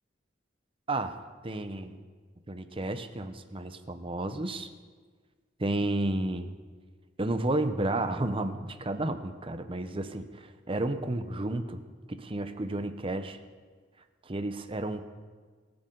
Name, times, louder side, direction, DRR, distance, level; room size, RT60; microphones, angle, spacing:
voice 1, 1.4-2.0 2.5-4.7 5.6-6.5 7.2-11.8 12.1-13.4 14.3-15.0, right 2 dB, 30° right, 9 dB, 0.8 m, -32 dB
24.0 x 8.7 x 3.9 m, 1.5 s
head